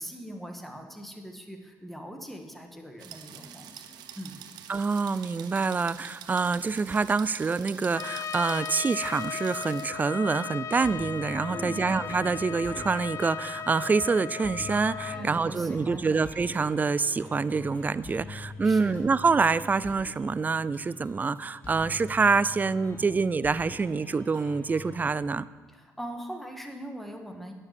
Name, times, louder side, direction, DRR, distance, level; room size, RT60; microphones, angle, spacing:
voice 1, 0.0-4.4 11.5-11.9 15.1-16.3 18.6-19.0 25.7-27.5, equal, 5° left, 4 dB, 1.6 m, -41 dB
sound 1, 3.0-9.9, right 9 dB, 75° right, 0.8 m, -46 dB
voice 2, 4.7-25.5, right 4 dB, 25° right, 17 dB, 0.3 m, -26 dB
Trumpet, 7.9-15.3, left 8 dB, 45° left, 0.4 m, -37 dB
sound 2, 10.8-25.2, left 2 dB, 25° left, 2.1 m, -44 dB
9.7 x 6.7 x 6.8 m, 1.5 s
supercardioid pair, 80°, 7 cm